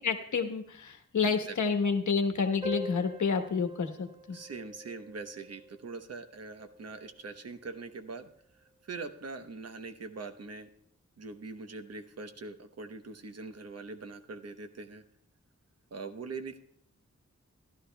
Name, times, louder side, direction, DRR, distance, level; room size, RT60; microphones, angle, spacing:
voice 1, 0.0-4.4, left 5 dB, 80° left, 5 dB, 1.2 m, -29 dB
voice 2, 1.2-1.5 4.3-8.3 8.5-10.7 11.2-15.0 15.9-16.6, right 4 dB, 60° right, 7 dB, 0.9 m, -42 dB
sound 1, 2.6-7.6, right 1 dB, 20° right, 3.8 m, -45 dB
15.5 x 11.5 x 2.2 m, 0.66 s
wide cardioid pair, 130°, 29 cm